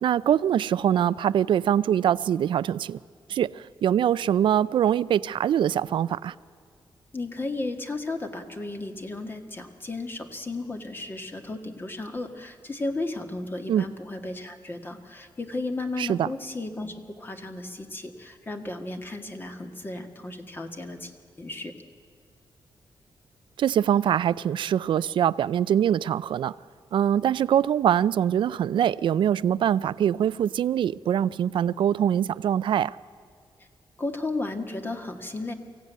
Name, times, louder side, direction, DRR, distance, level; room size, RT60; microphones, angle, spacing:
voice 1, 0.0-3.0 3.3-6.3 13.7-13.9 16.0-16.3 23.6-26.5 26.9-33.0, right 10 dB, 70° right, 0.5 m, -23 dB
voice 2, 7.1-21.1 21.4-21.7 33.6-33.7 34.0-35.5, left 2 dB, 25° left, 1.7 m, -34 dB
24.0 x 16.0 x 9.3 m
wide cardioid pair, 140°, 9 cm